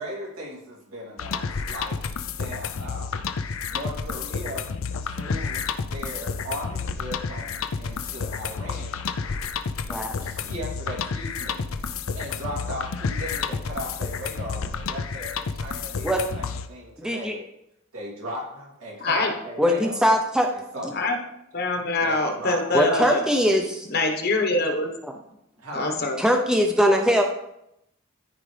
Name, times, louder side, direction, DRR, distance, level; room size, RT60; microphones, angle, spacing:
voice 1, 0.0-3.2 3.7-4.7 5.0-8.9 10.2-11.6 12.1-17.5 17.9-20.1 20.7-20.9 22.0-23.2 25.6-25.9, equal, 85° right, -3 dB, 2.9 m, -37 dB
sound 1, 1.2-16.7, left 5 dB, 75° left, 0.5 m, -30 dB
voice 2, 17.0-17.4 19.6-20.5 22.7-23.9 25.0-25.1 26.2-27.3, equal, 5° right, 2 dB, 0.6 m, -21 dB
voice 3, 19.0-19.3 20.9-21.2 21.5-23.2 23.9-24.9 25.7-26.2, left 2 dB, 50° left, 4 dB, 1.2 m, -24 dB
13.5 x 5.0 x 3.3 m, 0.81 s
head